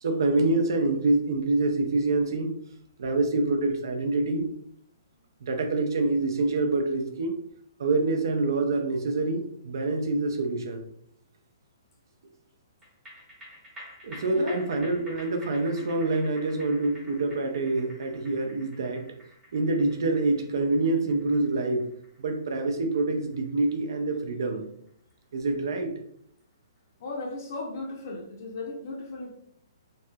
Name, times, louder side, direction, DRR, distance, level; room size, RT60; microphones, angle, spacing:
voice 1, 0.0-2.5 3.0-4.5 5.4-7.4 7.8-10.8 14.0-19.1 19.5-21.9 22.2-24.7 25.3-25.9, right 2 dB, 65° right, 5 dB, 0.5 m, -26 dB
sound 1, 12.8-25.5 25.8-25.9, left 1 dB, 5° right, 0.8 m, -50 dB
voice 2, 14.3-14.6 27.0-29.3, left 2 dB, 45° left, -1 dB, 0.6 m, -36 dB
3.1 x 2.8 x 2.2 m, 0.68 s
hypercardioid pair, 170°, 2 cm